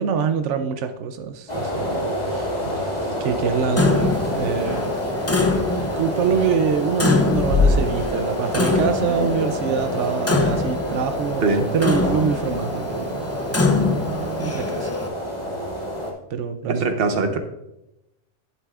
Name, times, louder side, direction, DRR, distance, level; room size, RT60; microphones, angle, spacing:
voice 1, 0.0-2.5 3.2-14.9 16.3-17.0, right 6 dB, 90° right, 8 dB, 1.0 m, -25 dB
sound 1, 1.5-16.1, left 1 dB, 35° left, 2.4 m, -26 dB
Clock, 3.8-15.1, left 3 dB, 20° left, 0.4 m, -25 dB
voice 2, 16.7-17.4, right 4 dB, 55° right, 6 dB, 1.1 m, -21 dB
11.0 x 9.7 x 2.4 m, 0.89 s
omnidirectional pair, 1.2 m